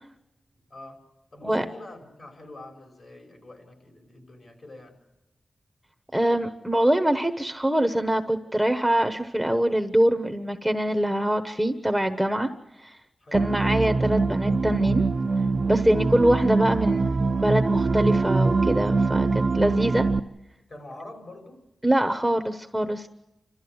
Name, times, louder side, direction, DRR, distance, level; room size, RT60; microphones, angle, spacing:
voice 1, 0.7-1.0 1.3-5.0 13.2-13.5 20.7-21.6, left 2 dB, 55° left, 2 dB, 5.6 m, -45 dB
voice 2, 6.1-12.5 12.8-13.0 13.3-15.0 15.7-20.1 21.8-23.1, right 1 dB, 5° right, 6 dB, 1.1 m, -24 dB
sound 1, 13.3-20.2, right 3 dB, 50° right, 0.7 m, -23 dB
29.5 x 14.0 x 7.9 m, 0.98 s
cardioid pair, 70°, 0 cm